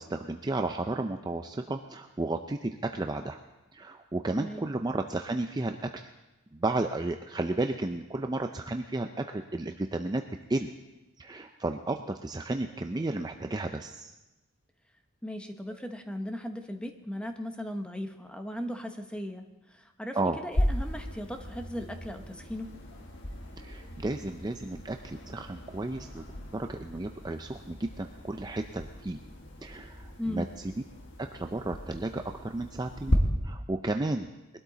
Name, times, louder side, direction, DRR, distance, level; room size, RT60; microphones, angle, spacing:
voice 1, 0.0-3.4 3.7-6.1 6.5-10.2 10.5-10.7 11.2-14.1 20.1-20.4 23.6-26.2 26.5-29.2 29.6-30.5 31.2-33.2 33.4-34.3, right 2 dB, 20° right, 5 dB, 0.4 m, -33 dB
voice 2, 4.3-4.7 15.2-22.7 30.2-30.5, equal, 5° left, 5 dB, 0.9 m, -37 dB
sound 1, 20.5-33.2, left 1 dB, 60° left, 1.6 m, -36 dB
21.5 x 12.5 x 4.0 m, 1.0 s
head